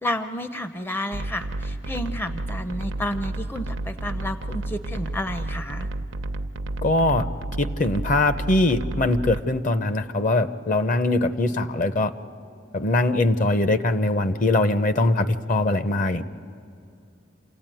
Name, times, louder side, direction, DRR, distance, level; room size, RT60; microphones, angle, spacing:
voice 1, 0.0-5.9, left 1 dB, 10° left, 9 dB, 0.5 m, -31 dB
sound 1, 1.1-9.4, right 2 dB, 90° right, 0.7 m, -31 dB
voice 2, 6.8-7.2 7.6-12.1 12.7-16.2, left 2 dB, 45° left, 11 dB, 0.7 m, -22 dB
27.5 x 16.0 x 9.1 m, 2.5 s
head